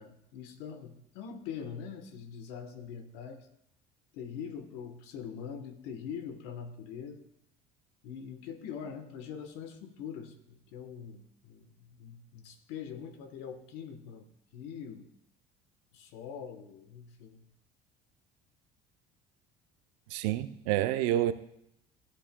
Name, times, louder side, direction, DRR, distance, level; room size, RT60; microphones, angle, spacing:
voice 1, 0.0-3.5 4.1-7.2 8.0-14.3 14.5-15.1 15.9-17.5, left 7 dB, 80° left, 9 dB, 1.1 m, -43 dB
voice 2, 20.1-21.3, right 13 dB, 85° right, 12 dB, 0.5 m, -28 dB
13.5 x 8.4 x 2.2 m, 0.77 s
cardioid pair, 125°, 18 cm